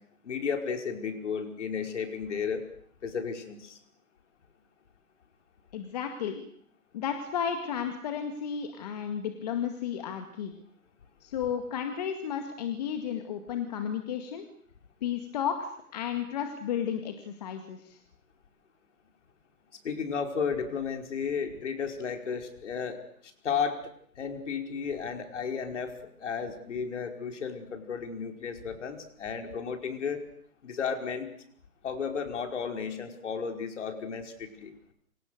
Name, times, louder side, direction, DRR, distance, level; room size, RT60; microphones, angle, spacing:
voice 1, 0.2-2.6 3.0-3.8 19.8-23.0 23.4-23.8 24.2-30.2 30.6-31.3 31.8-34.7, left 6 dB, 50° left, 5 dB, 5.3 m, -33 dB
voice 2, 5.7-6.4 6.9-10.5 11.2-14.5 15.0-18.0, left 8 dB, 25° left, 6 dB, 2.1 m, -33 dB
28.5 x 26.0 x 6.7 m, 0.63 s
hypercardioid pair, 165°, 46 cm